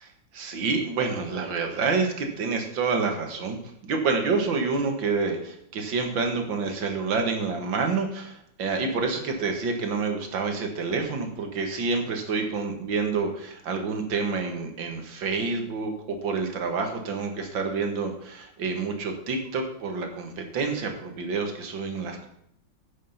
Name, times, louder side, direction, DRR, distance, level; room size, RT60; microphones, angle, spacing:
voice 1, 0.3-22.3, right 4 dB, 85° right, 4 dB, 2.3 m, -28 dB
10.5 x 6.5 x 5.7 m, 0.72 s
omnidirectional pair, 2.0 m